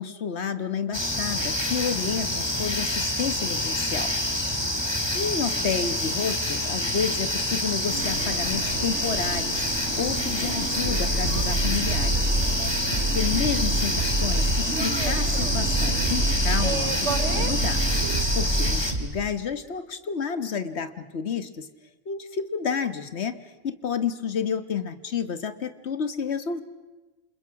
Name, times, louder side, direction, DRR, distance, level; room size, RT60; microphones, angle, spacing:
voice 1, 0.0-4.1 5.1-12.3 13.1-17.8 18.3-21.7 22.0-23.4 23.6-26.6, left 6 dB, 60° left, 11 dB, 1.6 m, -30 dB
sound 1, 0.9-18.9, left 1 dB, 20° left, 2.4 m, -27 dB
sound 2, 7.9-18.2, right 4 dB, 65° right, 1.6 m, -33 dB
sound 3, 10.8-19.2, right 1 dB, 40° right, 3.8 m, -27 dB
29.0 x 27.5 x 5.9 m, 1.2 s
omnidirectional pair, 1.3 m